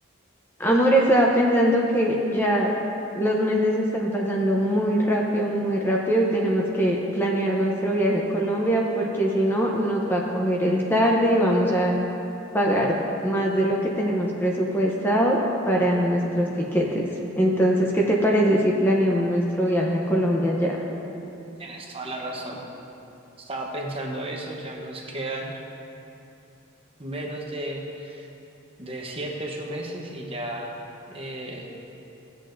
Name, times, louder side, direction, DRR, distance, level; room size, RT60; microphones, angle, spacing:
voice 1, 0.6-2.7 3.2-11.9 12.5-13.0 13.2-17.0 17.4-20.8, equal, 10° left, -2 dB, 0.7 m, -22 dB
voice 2, 21.6-22.6 23.4-25.6 27.0-28.3 28.8-30.8 31.1-31.7, right 1 dB, 25° right, 0 dB, 0.9 m, -33 dB
15.5 x 7.8 x 2.6 m, 2.8 s
head